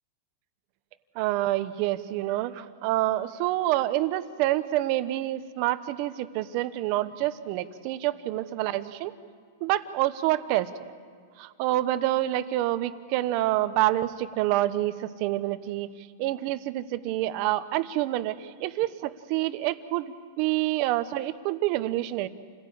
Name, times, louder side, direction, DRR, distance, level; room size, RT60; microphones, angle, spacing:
voice 1, 1.1-9.1 9.6-10.7 11.4-15.9 16.2-22.3, right 15 dB, 40° right, 12 dB, 1.0 m, -27 dB
28.5 x 17.0 x 8.7 m, 2.1 s
supercardioid pair, 165°, 0 cm